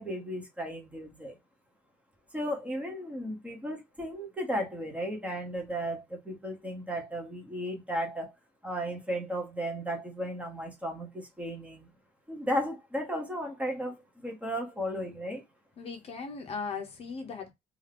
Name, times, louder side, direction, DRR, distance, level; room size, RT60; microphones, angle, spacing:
voice 1, 0.0-1.4 2.3-8.3 8.6-11.9 12.3-15.4, equal, 10° right, 0.8 m, -35 dB
voice 2, 15.8-17.5, left 5 dB, 40° left, 0.6 m, -38 dB
2.7 x 2.4 x 3.3 m
cardioid pair, 170°, 16 cm